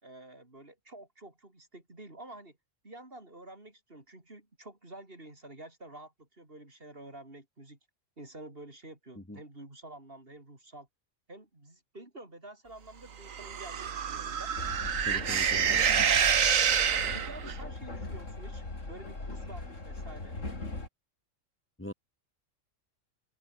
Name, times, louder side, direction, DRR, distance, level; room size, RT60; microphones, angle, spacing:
voice 1, 0.0-2.6 2.8-7.8 8.2-10.9 11.3-14.5 15.1-16.2 17.1-20.4, right 2 dB, 45° right, 5.0 m, -49 dB
sound 1, 13.3-17.6, right 7 dB, 85° right, 1.7 m, -27 dB
Train, 14.6-20.9, left 2 dB, 70° left, 4.7 m, -40 dB
voice 2, 15.0-16.1 21.8-21.9, left 1 dB, 10° left, 1.7 m, -42 dB
omnidirectional pair, 1.3 m